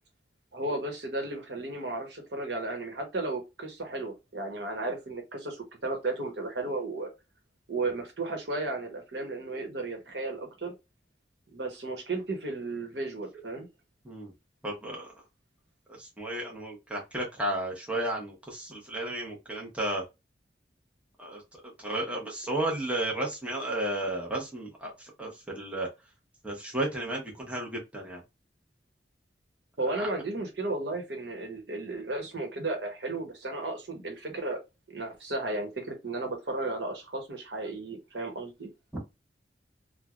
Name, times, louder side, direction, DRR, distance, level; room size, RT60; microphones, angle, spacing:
voice 1, 0.5-7.1 7.7-10.7 11.5-13.7 29.8-34.6 34.9-38.7, right 2 dB, 70° right, 1.0 m, -34 dB
voice 2, 14.6-15.1 15.9-20.0 21.2-25.9 26.4-28.2 29.9-30.1 38.9-39.0, right 1 dB, 5° right, 0.8 m, -33 dB
3.2 x 2.2 x 2.3 m
head